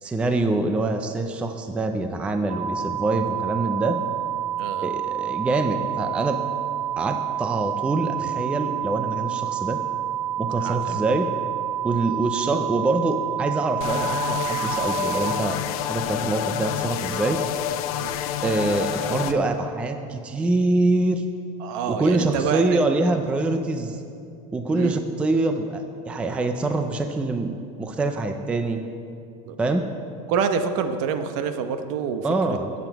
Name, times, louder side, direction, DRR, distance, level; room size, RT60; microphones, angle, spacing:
voice 1, 0.0-4.0 4.8-6.4 7.0-9.8 10.4-11.3 11.8-17.4 18.4-21.2 21.9-24.0 24.5-28.8 29.6-29.9 32.2-32.7, right 2 dB, 5° right, 6 dB, 0.4 m, -25 dB
sound 1, 2.5-15.3, right 11 dB, 35° right, 1.5 m, -28 dB
voice 2, 10.6-11.0 11.9-12.1 18.0-18.1 21.6-22.9 24.7-25.0 29.5-29.6 30.3-32.3, right 6 dB, 60° right, 8 dB, 0.9 m, -27 dB
sound 2, 13.8-19.3, left 11 dB, 80° left, 0.7 m, -28 dB
18.0 x 7.9 x 4.6 m, 2.5 s
cardioid pair, 175°, 18 cm